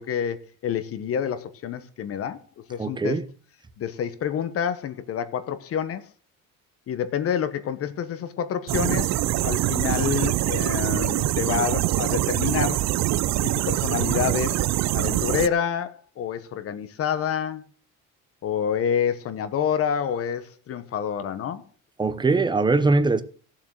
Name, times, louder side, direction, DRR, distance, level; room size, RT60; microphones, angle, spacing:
voice 1, 0.0-2.4 2.7-3.2 3.8-6.1 6.9-9.2 9.4-12.8 13.4-14.6 14.9-17.6 18.4-21.6, left 8 dB, 45° left, 1.1 m, -28 dB
voice 2, 2.8-3.2 22.0-23.2, right 3 dB, 15° right, 0.8 m, -21 dB
sound 1, 8.7-15.5, right 15 dB, 55° right, 0.6 m, -24 dB
15.5 x 7.3 x 6.4 m
cardioid pair, 170°, 33 cm